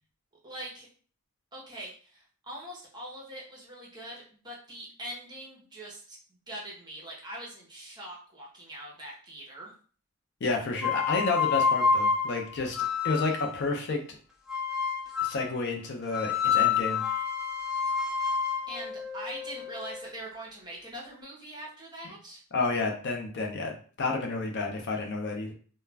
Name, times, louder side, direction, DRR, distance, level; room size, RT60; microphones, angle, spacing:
voice 1, 0.4-0.9 1.5-9.7 18.7-22.4, right 1 dB, 20° right, -3 dB, 0.8 m, -43 dB
voice 2, 10.4-12.8 13.0-14.0 15.2-17.0 22.5-25.5, left 3 dB, 55° left, 1 dB, 0.5 m, -30 dB
sound 1, 10.8-13.6 14.5-15.5 16.1-20.1, left 6 dB, ahead, 0.3 m, -28 dB
2.3 x 2.1 x 3.2 m, 0.42 s
head